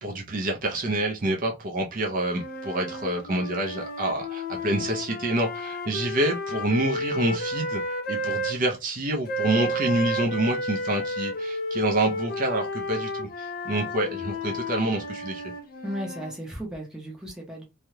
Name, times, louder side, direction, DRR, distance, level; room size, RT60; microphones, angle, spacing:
voice 1, 0.0-7.8 8.1-15.4, right 1 dB, 40° right, 0.6 m, -27 dB
sound 1, 2.3-8.6 9.3-16.4, left 1 dB, 40° left, 0.5 m, -32 dB
voice 2, 15.8-17.6, equal, 5° right, 0.7 m, -35 dB
3.2 x 2.3 x 2.8 m
head